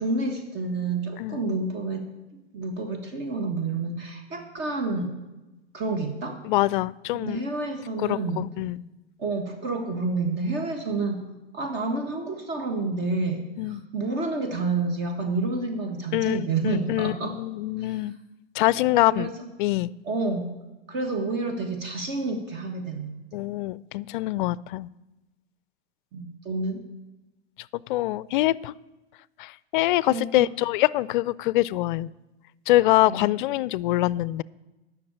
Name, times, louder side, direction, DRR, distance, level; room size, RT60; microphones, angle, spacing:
voice 1, 0.0-2.0 2.5-5.1 5.7-6.4 7.1-8.5 9.2-11.2 11.5-17.3 17.8-18.0 19.1-19.5 20.0-20.5 20.9-23.2 26.1-26.8 30.1-30.5 33.1-33.3, right 3 dB, 35° right, 5 dB, 1.5 m, -29 dB
voice 2, 6.4-7.4 8.0-8.8 13.6-13.8 16.1-18.1 18.6-19.3 19.6-19.9 23.3-24.9 27.9-28.7 29.4-32.1 32.7-34.4, left 16 dB, 55° left, 22 dB, 0.4 m, -24 dB
10.5 x 6.3 x 8.7 m, 1.0 s
hypercardioid pair, 120°, 31 cm